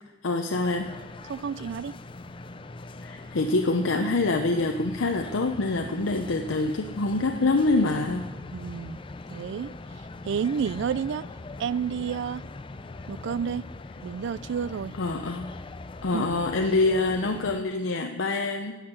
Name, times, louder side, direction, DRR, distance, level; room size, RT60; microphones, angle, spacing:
voice 1, 0.2-0.9 3.0-8.3 14.9-15.5 16.0-18.8, left 3 dB, 75° left, 0.7 m, -25 dB
sound 1, 0.5-17.6, left 2 dB, 25° left, 0.4 m, -41 dB
voice 2, 1.3-1.9 8.5-9.0 9.3-9.7 10.2-11.3 11.6-12.4 13.1-13.7 14.0-14.9 16.1-16.3, right 7 dB, 65° right, 0.3 m, -30 dB
10.5 x 8.1 x 7.5 m
head